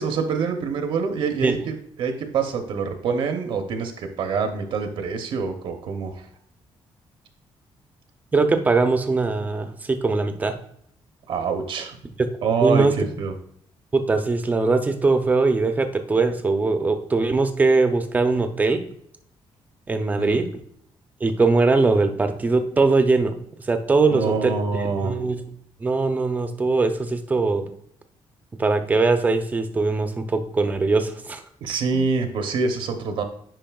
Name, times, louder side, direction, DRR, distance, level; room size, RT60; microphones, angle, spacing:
voice 1, 0.0-6.3 11.3-12.0 12.4-13.3 20.2-20.4 24.1-25.2 31.6-33.2, right 5 dB, 60° right, 6 dB, 0.7 m, -25 dB
voice 2, 8.3-10.6 12.2-12.9 13.9-18.8 19.9-20.5 21.2-23.3 23.7-24.5 25.0-25.4 25.8-27.7 28.6-31.4, right 3 dB, 15° right, 7 dB, 0.5 m, -21 dB
8.9 x 5.3 x 2.3 m, 0.67 s
cardioid pair, 175°, 10 cm